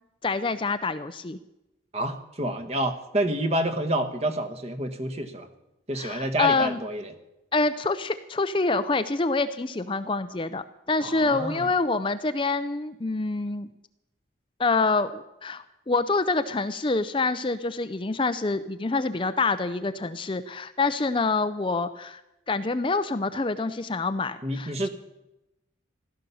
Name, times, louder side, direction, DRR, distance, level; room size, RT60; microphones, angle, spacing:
voice 1, 0.2-1.4 6.0-6.8 7.5-13.7 14.6-22.2 22.5-24.9, left 3 dB, 25° left, 11 dB, 0.5 m, -26 dB
voice 2, 1.9-5.5 5.9-7.1 11.0-11.7 24.4-24.9, right 1 dB, 30° right, 9 dB, 1.3 m, -28 dB
15.5 x 12.5 x 7.0 m, 0.92 s
head